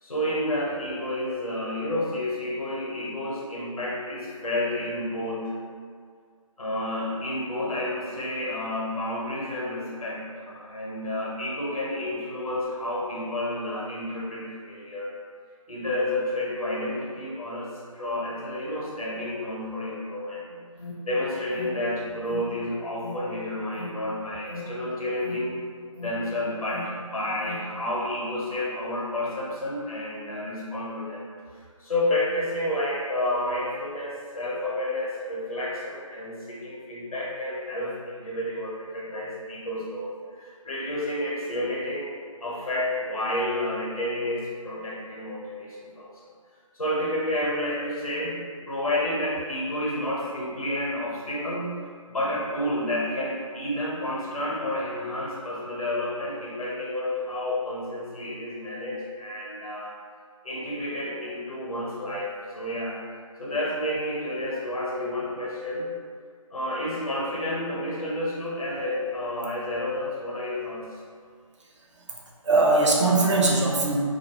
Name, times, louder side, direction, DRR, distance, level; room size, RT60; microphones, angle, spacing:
voice 1, 0.0-5.5 6.6-15.1 15.7-20.4 21.0-25.6 26.0-31.2 31.5-42.1 42.4-46.3 46.7-48.4 48.7-51.8 52.1-59.9 60.4-63.0 63.4-65.9 66.5-70.9, left 1 dB, 85° left, -5 dB, 0.9 m, -30 dB
Alarm, 20.3-27.7, left 1 dB, 45° left, 0.5 m, -42 dB
voice 2, 72.1-74.0, right 3 dB, 55° right, -2 dB, 0.5 m, -21 dB
2.6 x 2.0 x 2.9 m, 2.1 s
figure-of-eight pair, 160°, 18 cm